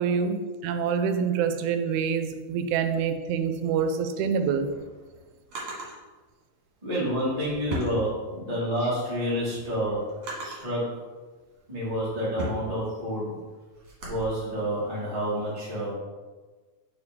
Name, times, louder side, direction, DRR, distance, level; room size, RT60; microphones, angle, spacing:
voice 1, 0.0-4.7, right 6 dB, 85° right, 8 dB, 2.0 m, -26 dB
Drawer open or close, 4.3-6.0 7.0-8.6 9.1-10.8 11.4-14.2, right 1 dB, 50° right, 2.2 m, -38 dB
voice 2, 6.8-10.0 10.4-10.8 11.7-13.4 14.0-15.9, equal, 20° right, -8 dB, 1.0 m, -29 dB
6.8 x 4.7 x 3.5 m, 1.3 s
omnidirectional pair, 3.5 m